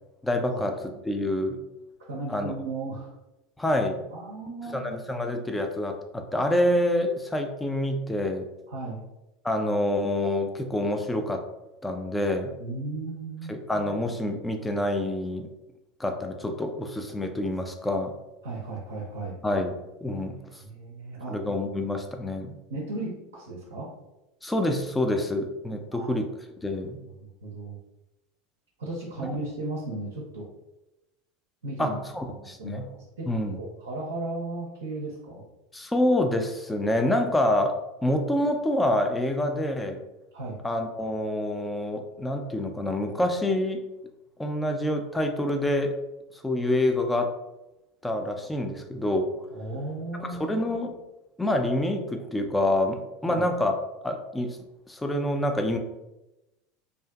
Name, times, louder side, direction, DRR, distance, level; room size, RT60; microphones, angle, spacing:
voice 1, 0.2-1.6 2.3-2.5 3.6-4.0 4.7-8.5 9.4-11.4 11.8-12.5 13.5-15.5 16.0-18.1 19.4-19.7 20.0-20.6 21.3-22.6 24.4-26.3 26.6-27.0 29.2-29.3 31.8-32.8 33.3-33.6 35.7-40.0 40.6-43.8 44.4-45.9 46.3-47.3 48.0-49.3 50.2-51.0 51.4-53.7 54.0-54.6 54.9-55.8, left 1 dB, 10° left, 4 dB, 0.3 m, -27 dB
voice 2, 2.1-3.1 4.1-5.0 8.7-9.0 12.6-13.6 18.4-19.4 20.6-21.4 22.7-23.9 25.9-26.1 27.0-27.8 28.8-30.5 31.6-32.0 32.2-33.3 33.6-35.4 40.3-40.6 49.5-50.6 53.3-53.5, right 2 dB, 75° right, -4 dB, 0.5 m, -35 dB
2.4 x 2.4 x 2.3 m, 0.96 s
figure-of-eight pair, 80°, 0 cm